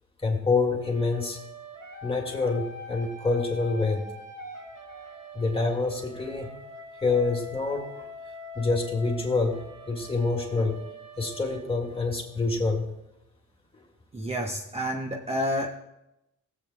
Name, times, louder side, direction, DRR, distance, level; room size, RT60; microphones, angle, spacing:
voice 1, 0.2-1.4 2.0-4.1 5.3-6.5 7.0-7.9 8.6-10.8 11.2-12.9, left 3 dB, 20° left, 1 dB, 2.0 m, -26 dB
sound 1, 0.8-12.6, left 1 dB, 90° right, 4.1 m, -44 dB
voice 2, 14.1-15.7, equal, 20° right, 0 dB, 0.9 m, -29 dB
17.5 x 7.9 x 2.2 m, 0.88 s
cardioid pair, 90°, 30 cm